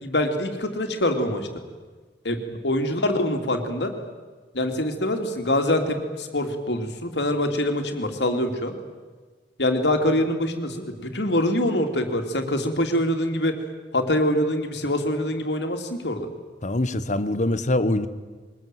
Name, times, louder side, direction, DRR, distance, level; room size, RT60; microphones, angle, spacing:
voice 1, 0.0-1.5 2.2-3.9 4.5-8.7 9.6-13.5 13.9-16.3, left 1 dB, 75° left, 5 dB, 3.0 m, -24 dB
voice 2, 16.6-18.1, left 1 dB, 45° left, 13 dB, 1.2 m, -23 dB
23.0 x 20.5 x 9.3 m, 1.4 s
head